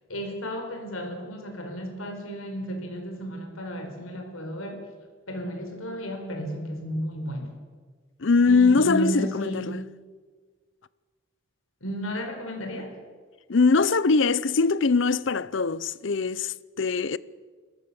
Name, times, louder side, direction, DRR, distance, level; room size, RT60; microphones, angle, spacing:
voice 1, 0.1-4.8 5.3-7.5 8.4-9.8 11.8-12.9, equal, 85° left, 4.8 m, -33 dB
voice 2, 8.2-9.8 13.5-17.2, left 4 dB, 65° left, 0.6 m, -22 dB
25.0 x 14.5 x 7.1 m
head